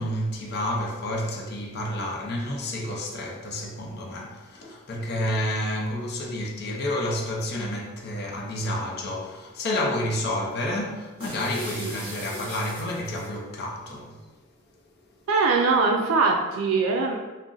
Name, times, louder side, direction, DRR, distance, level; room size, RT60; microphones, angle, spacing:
voice 1, 0.0-14.2, left 1 dB, 50° left, 0.5 m, -30 dB
sound 1, 11.2-13.3, right 1 dB, 25° right, 1.1 m, -40 dB
voice 2, 15.3-17.2, right 4 dB, 85° right, 0.3 m, -22 dB
2.5 x 2.0 x 3.7 m
head